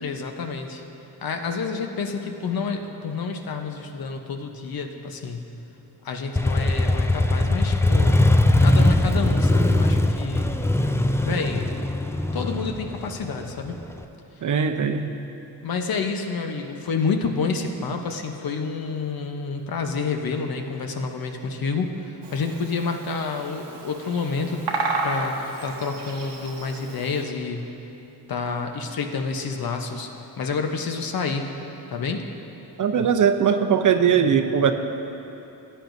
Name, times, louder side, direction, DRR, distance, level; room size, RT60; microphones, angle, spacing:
voice 1, 0.0-0.8 1.2-5.4 6.0-8.2 8.6-10.5 11.2-11.8 12.3-13.8 15.6-24.6 25.0-25.3 25.6-27.7 28.3-30.1 30.4-31.5 31.9-32.2, left 4 dB, 60° left, 4 dB, 0.9 m, -29 dB
Motorcycle, 6.4-14.0, left 1 dB, 5° left, 0.4 m, -20 dB
voice 2, 14.4-15.1 32.8-34.7, right 7 dB, 50° right, 7 dB, 0.6 m, -20 dB
Bird vocalization bird call bird song, 22.2-27.2, right 3 dB, 85° right, 1.1 m, -32 dB
14.5 x 9.2 x 2.7 m, 3.0 s
cardioid pair, 65°, 40 cm